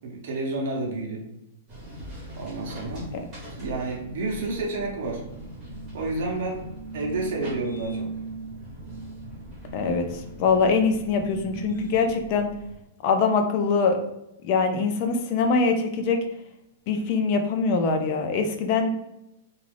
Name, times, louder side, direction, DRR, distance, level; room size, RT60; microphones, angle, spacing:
voice 1, 0.0-1.3 2.4-3.1 3.6-5.2 5.9-6.6 6.9-8.1, right 2 dB, 55° right, -1 dB, 0.7 m, -30 dB
sound 1, 1.7-12.7, right 2 dB, 20° right, 1.1 m, -38 dB
voice 2, 9.7-10.1 10.4-12.5 13.0-14.0 14.4-16.2 16.9-18.9, left 4 dB, 35° left, 5 dB, 0.4 m, -23 dB
2.4 x 2.4 x 3.3 m, 0.88 s
supercardioid pair, 170°, 0 cm